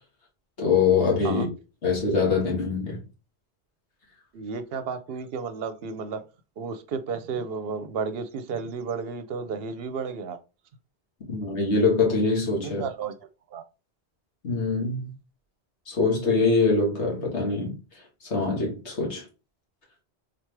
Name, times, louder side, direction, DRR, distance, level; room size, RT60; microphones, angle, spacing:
voice 1, 0.6-1.5 1.8-3.0 11.3-12.8 14.4-15.1 15.9-17.8 18.2-19.2, left 4 dB, 80° left, 1.8 m, -23 dB
voice 2, 4.3-6.2 6.6-10.4 12.6-13.2 13.5-13.6, right 5 dB, 65° right, 0.7 m, -32 dB
3.8 x 3.2 x 3.3 m
omnidirectional pair, 1.1 m